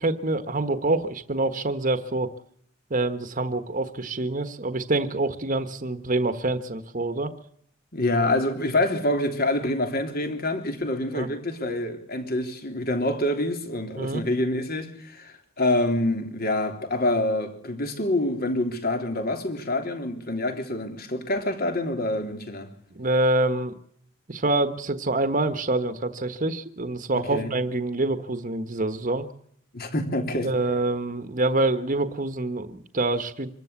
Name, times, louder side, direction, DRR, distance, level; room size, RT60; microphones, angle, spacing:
voice 1, 0.0-2.3 2.9-7.3 11.1-11.3 14.0-14.2 22.9-23.7 24.3-29.3 30.4-33.6, right 2 dB, 40° right, 1.3 m, -26 dB
voice 2, 7.9-22.7 27.1-27.5 29.7-30.5, left 1 dB, 50° left, 3.4 m, -26 dB
25.5 x 13.5 x 8.3 m
head